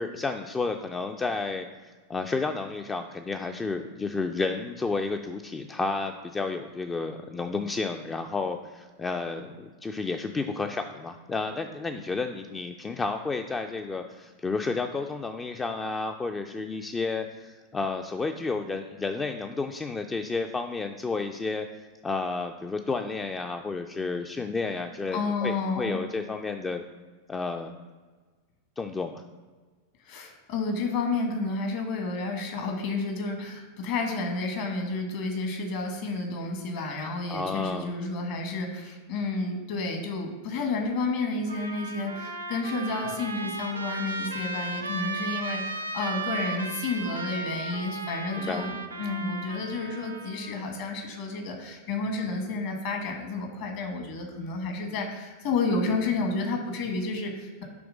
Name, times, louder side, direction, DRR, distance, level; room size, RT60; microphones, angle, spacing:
voice 1, 0.0-21.7 22.0-26.8 27.3-27.7 28.8-29.2 37.3-37.9 48.4-48.7, left 4 dB, 15° left, 6 dB, 0.3 m, -31 dB
voice 2, 25.1-26.0 30.0-57.6, left 3 dB, 50° left, 3 dB, 1.2 m, -31 dB
Trumpet, 41.5-50.6, right 3 dB, 80° right, 0.5 m, -35 dB
6.9 x 3.1 x 5.0 m, 1.4 s
figure-of-eight pair, 90°, 0 cm